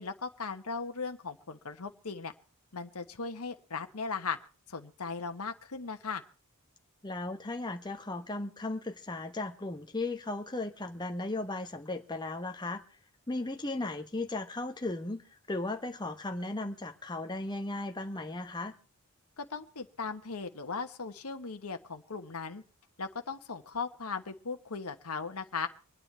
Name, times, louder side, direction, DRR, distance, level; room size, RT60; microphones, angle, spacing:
voice 1, 0.0-2.3 2.7-4.4 4.7-6.2 19.4-22.6 23.0-25.7, left 4 dB, 70° left, 1.3 m, -38 dB
voice 2, 7.0-12.8 13.3-18.7, left 2 dB, 20° left, 1.1 m, -36 dB
25.0 x 9.7 x 4.5 m
head